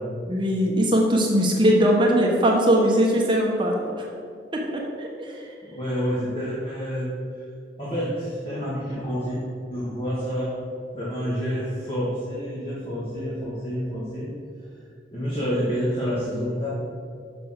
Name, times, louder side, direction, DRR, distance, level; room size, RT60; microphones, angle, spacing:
voice 1, 0.3-4.1 4.5-5.5, equal, 25° right, -1 dB, 1.0 m, -21 dB
voice 2, 5.6-7.1 7.8-9.4 9.7-10.6 10.9-14.3 15.1-16.7, equal, 30° left, -9 dB, 1.9 m, -28 dB
6.7 x 6.0 x 6.4 m, 2.4 s
head